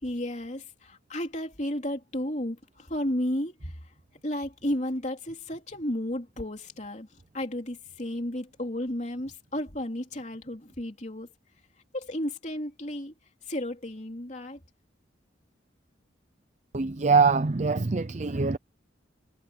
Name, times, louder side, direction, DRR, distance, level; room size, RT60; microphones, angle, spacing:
voice 1, 0.0-3.7 4.2-7.1 7.3-11.3 11.9-13.1 13.5-14.6, left 1 dB, 40° left, 3.2 m, -33 dB
voice 2, 16.7-18.6, right 4 dB, 40° right, 0.6 m, -23 dB
head